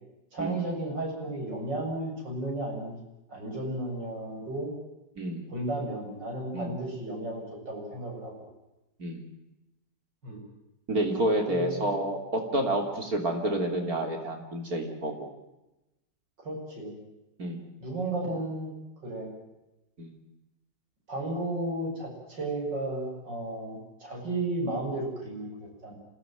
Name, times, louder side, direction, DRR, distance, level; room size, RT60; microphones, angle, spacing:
voice 1, 0.3-3.0 3.3-4.7 5.5-8.3 10.2-10.4 11.5-12.0 16.4-16.9 17.8-18.7 19.0-19.3 21.1-25.9, right 2 dB, 75° right, 0 dB, 8.3 m, -33 dB
voice 2, 5.2-5.5 6.5-6.7 9.0-9.3 10.9-15.3 17.4-17.6 20.0-20.1, right 1 dB, 55° right, 3 dB, 3.7 m, -29 dB
26.5 x 17.0 x 9.2 m, 0.96 s
omnidirectional pair, 1.9 m